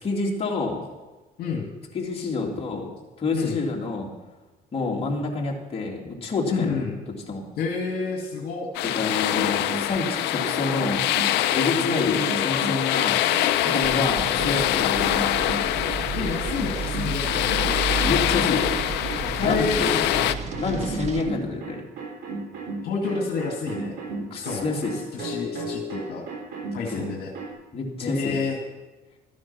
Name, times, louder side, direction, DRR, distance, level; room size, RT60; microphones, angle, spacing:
voice 1, 0.0-0.8 1.9-2.9 3.2-4.1 4.7-6.8 7.3-7.4 8.8-11.0 11.5-13.2 13.6-15.4 18.0-18.7 19.4-19.9 20.6-21.8 24.3-24.9 26.9-27.0 27.7-28.4, left 3 dB, 35° left, -2 dB, 2.9 m, -28 dB
voice 2, 1.4-1.7 2.2-2.3 3.3-3.6 6.5-7.0 7.6-8.7 11.8-12.6 16.1-17.8 19.3-20.1 20.7-20.8 22.8-24.0 24.3-26.2 26.7-27.3 28.0-28.6, left 5 dB, 65° left, 1 dB, 2.0 m, -29 dB
sound 1, 8.7-20.3, left 13 dB, 85° left, 0.6 m, -24 dB
sound 2, 9.1-14.0 14.4-27.5, right 2 dB, 70° right, 4.0 m, -34 dB
sound 3, 13.8-21.2, right 4 dB, 40° right, 1.4 m, -32 dB
13.5 x 9.5 x 5.9 m, 1.2 s
cardioid pair, 110°, 17 cm